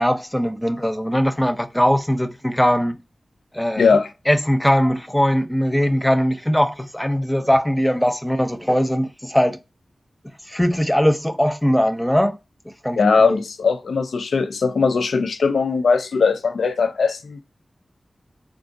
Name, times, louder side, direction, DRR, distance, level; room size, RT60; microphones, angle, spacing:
voice 1, 0.0-3.0 3.5-3.9 4.3-9.6 10.5-12.4 12.8-13.4, equal, 10° left, 0.5 m, -20 dB
voice 2, 3.8-4.1 13.0-17.4, left 5 dB, 85° left, 0.3 m, -19 dB
3.7 x 2.3 x 2.5 m
cardioid pair, 45°, 0 cm